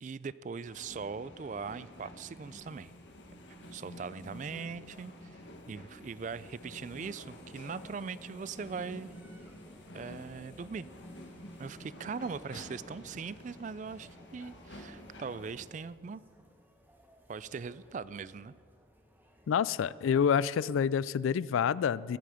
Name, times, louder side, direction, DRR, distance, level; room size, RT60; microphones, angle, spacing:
voice 1, 0.0-2.9 3.7-5.4 5.7-9.1 9.9-10.9 11.6-16.2 17.3-18.5, right 5 dB, 40° right, 18 dB, 0.3 m, -40 dB
sound 1, 0.6-15.6, left 1 dB, 65° left, 1.7 m, -50 dB
sound 2, 7.6-19.6, equal, 10° right, 1.4 m, -62 dB
voice 2, 19.5-22.2, left 7 dB, 85° left, 20 dB, 0.3 m, -28 dB
21.5 x 9.3 x 5.0 m, 2.1 s
head